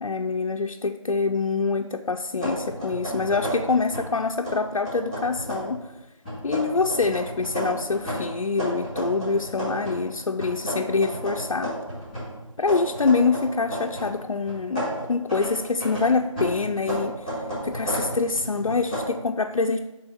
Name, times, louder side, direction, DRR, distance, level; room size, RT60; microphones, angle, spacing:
voice 1, 0.0-5.9 6.4-11.8 12.6-17.3 17.6-19.8, left 4 dB, 75° left, 3 dB, 0.4 m, -25 dB
sound 1, 2.4-4.1 4.4-5.8 6.3-10.1 10.4-14.2 14.5-19.1, right 1 dB, 5° right, 2.9 m, -32 dB
11.0 x 3.8 x 4.4 m, 1.0 s
figure-of-eight pair, 175°, 17 cm